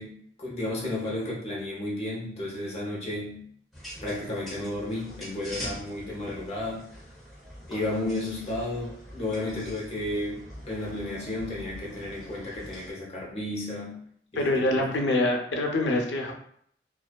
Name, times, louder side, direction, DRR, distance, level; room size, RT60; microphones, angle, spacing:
voice 1, 0.0-3.5 4.0-6.9 7.7-14.0 14.3-14.8, left 1 dB, 35° left, -4 dB, 0.7 m, -33 dB
sound 1, 3.7-12.9, equal, ahead, 0.6 m, -43 dB
voice 2, 14.4-16.3, left 1 dB, 90° left, 2 dB, 0.5 m, -25 dB
2.4 x 2.3 x 2.2 m, 0.63 s
head